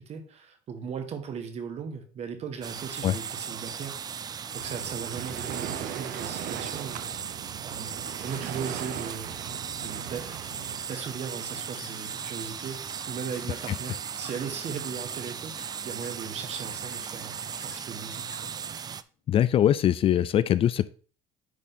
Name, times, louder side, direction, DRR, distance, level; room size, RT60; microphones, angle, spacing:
voice 1, 0.0-7.3 7.6-9.3 9.8-10.4 10.9-17.4 17.6-18.5, right 6 dB, 50° right, 7 dB, 1.6 m, -38 dB
sound 1, 2.6-19.0, right 7 dB, 30° right, 0.4 m, -37 dB
Waves surf, 4.5-10.8, right 10 dB, 65° right, 0.9 m, -39 dB
sound 2, 8.4-20.2, left 5 dB, 60° left, 2.5 m, -54 dB
voice 2, 19.3-20.9, left 11 dB, 40° left, 16 dB, 0.4 m, -22 dB
9.9 x 3.7 x 4.1 m, 0.40 s
cardioid pair, 105°, 14 cm